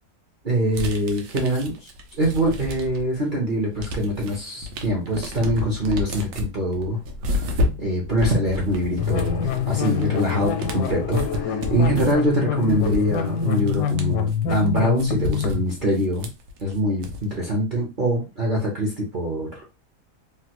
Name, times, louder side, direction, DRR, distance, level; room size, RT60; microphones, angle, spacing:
voice 1, 0.4-1.9 2.2-7.0 7.3-16.3 16.6-19.6, equal, 50° right, -2 dB, 0.6 m, -24 dB
sound 1, 0.7-3.2 3.5-17.4, left 2 dB, 85° right, 1.3 m, -31 dB
sound 2, 9.0-15.6, left 7 dB, 80° left, 1.1 m, -25 dB
3.2 x 2.2 x 2.9 m, 0.27 s
omnidirectional pair, 1.8 m